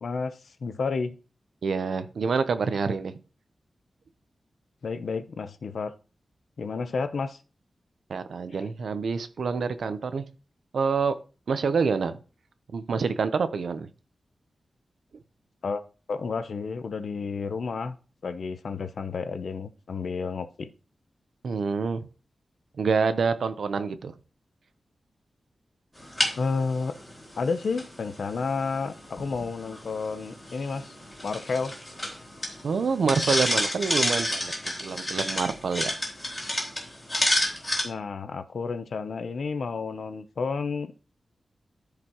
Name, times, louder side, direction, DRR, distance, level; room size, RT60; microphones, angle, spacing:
voice 1, 0.0-1.1 4.8-5.9 6.6-7.4 8.5-8.6 15.6-15.8 16.1-17.9 18.2-20.7 26.4-27.0 27.4-30.9 31.2-31.7 37.8-41.1, left 4 dB, 65° left, 10 dB, 0.8 m, -31 dB
voice 2, 1.6-3.1 8.1-10.2 10.7-11.2 11.5-12.2 12.7-13.9 21.4-22.1 22.8-24.1 32.6-35.9, right 5 dB, 80° right, 11 dB, 0.8 m, -27 dB
sound 1, 26.0-37.8, left 1 dB, 15° left, 3.2 m, -31 dB
13.5 x 5.0 x 3.1 m, 0.35 s
wide cardioid pair, 165°, 0 cm